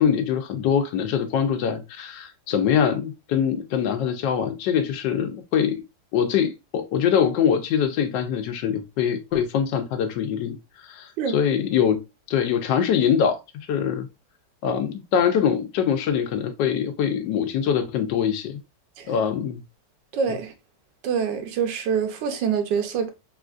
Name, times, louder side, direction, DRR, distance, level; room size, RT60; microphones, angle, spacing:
voice 1, 0.0-5.8 6.1-10.6 10.9-12.0 12.3-13.4 13.7-14.1 14.6-18.6 19.1-19.6 20.3-20.4, left 8 dB, 85° left, 1.2 m, -23 dB
voice 2, 20.1-20.5 21.0-23.1, right 6 dB, 90° right, 1.4 m, -25 dB
3.7 x 2.4 x 2.4 m
omnidirectional pair, 1.9 m